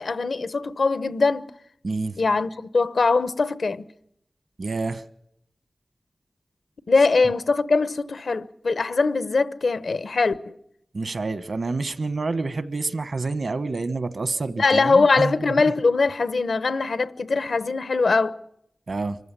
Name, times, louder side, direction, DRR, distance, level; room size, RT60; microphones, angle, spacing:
voice 1, 0.0-1.5 2.2-3.8 6.9-10.6 14.6-18.4, left 4 dB, 80° left, 0.9 m, -22 dB
voice 2, 1.8-2.2 4.6-5.0 10.9-15.3 18.9-19.2, right 3 dB, 65° right, 1.2 m, -28 dB
25.5 x 15.0 x 9.9 m
wide cardioid pair, 80°, 0 cm